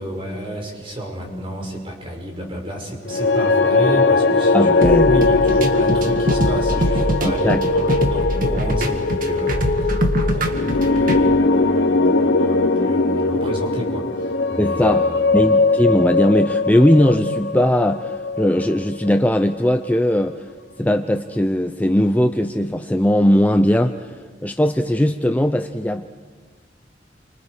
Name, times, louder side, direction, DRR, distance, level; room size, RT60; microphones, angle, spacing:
voice 1, 0.0-9.9 10.2-15.4, right 1 dB, 30° right, 0 dB, 5.6 m, -30 dB
sound 1, 3.1-19.4, left 3 dB, 80° left, 1.0 m, -20 dB
voice 2, 4.5-5.2 7.2-7.7 14.6-20.5 20.8-24.1 24.4-26.1, left 1 dB, 10° left, 7 dB, 0.6 m, -19 dB
sound 2, 4.8-11.2, equal, 50° right, 1.9 m, -23 dB
29.5 x 25.0 x 4.9 m, 1.5 s
head